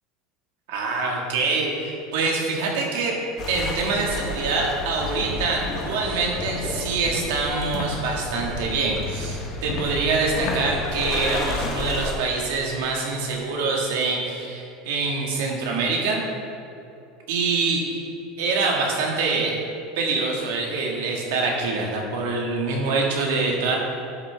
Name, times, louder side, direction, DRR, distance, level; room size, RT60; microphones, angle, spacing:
voice 1, 0.7-3.2 3.5-16.2 17.3-17.8 18.4-19.6 20.0-23.8, right 3 dB, 85° right, -1 dB, 1.8 m, -25 dB
sound 1, 3.4-12.2, left 2 dB, 30° left, 1.0 m, -31 dB
Walk footsteps, 5.7-5.9 6.4-6.6 7.0-7.2 7.7-7.9 8.3-8.6 9.0-9.2 9.6-9.9 10.4-10.6, left 4 dB, 55° left, 1.3 m, -32 dB
11.0 x 6.5 x 3.5 m, 2.6 s
cardioid pair, 175°, 0 cm